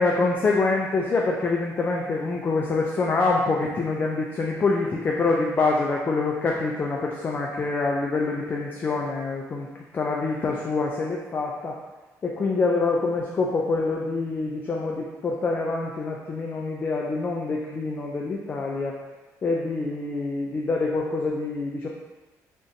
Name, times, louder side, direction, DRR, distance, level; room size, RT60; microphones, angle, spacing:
voice 1, 0.0-9.7 9.9-11.8 12.2-19.0 19.4-21.9, left 3 dB, 30° left, -1 dB, 0.4 m, -25 dB
3.6 x 2.6 x 3.9 m, 1.1 s
cardioid pair, 140°, 6 cm